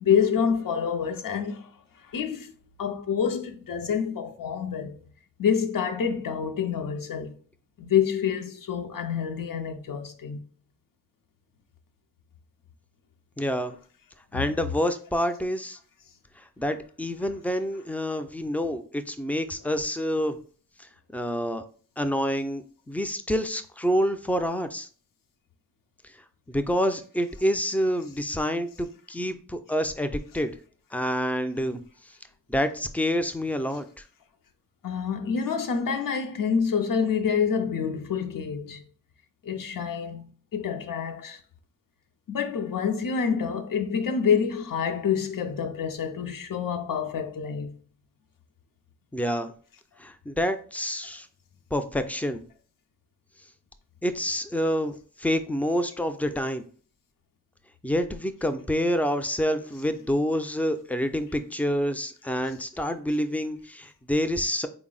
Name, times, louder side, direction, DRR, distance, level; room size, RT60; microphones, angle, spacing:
voice 1, 0.0-1.7 2.0-2.5 2.8-5.0 5.4-7.4 7.8-10.4 13.6-13.7 14.3-14.5 21.2-21.3 34.8-38.9 39.4-41.4 42.3-47.8 62.5-62.6, left 7 dB, 85° left, 0.5 m, -27 dB
voice 2, 13.4-13.7 14.3-15.8 16.6-20.4 21.1-21.6 22.0-24.9 26.5-30.5 30.9-31.8 32.5-33.8 49.1-49.5 50.0-51.3 51.7-52.4 54.0-56.6 57.8-64.7, equal, 5° left, 0.3 m, -27 dB
4.0 x 2.0 x 3.7 m
wide cardioid pair, 70°, 32 cm